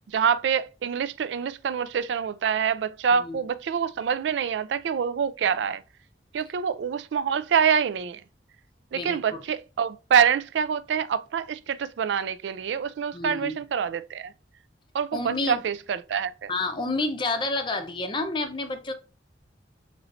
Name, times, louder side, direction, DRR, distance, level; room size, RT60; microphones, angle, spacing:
voice 1, 0.1-5.8 6.3-8.2 8.9-14.3 14.9-16.5, right 7 dB, 80° right, 0.3 m, -26 dB
voice 2, 13.1-13.6 15.1-15.6 16.5-18.9, left 2 dB, 25° left, 0.5 m, -29 dB
4.1 x 3.1 x 2.5 m
head